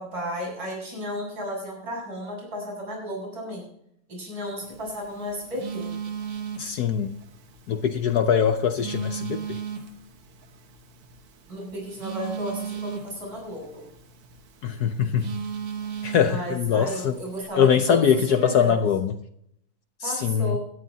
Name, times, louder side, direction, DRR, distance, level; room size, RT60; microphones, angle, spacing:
voice 1, 0.0-3.7 4.1-5.9 11.5-13.9 16.2-18.8 20.0-20.6, equal, 55° right, -2 dB, 8.1 m, -33 dB
Telephone, 4.6-17.4, right 7 dB, 80° right, 2.3 m, -38 dB
voice 2, 6.6-7.1 7.7-9.6 14.6-15.4 16.0-17.2 17.6-19.1 20.0-20.6, left 7 dB, 70° left, 9 dB, 1.0 m, -22 dB
20.0 x 13.0 x 2.8 m, 0.72 s
omnidirectional pair, 2.4 m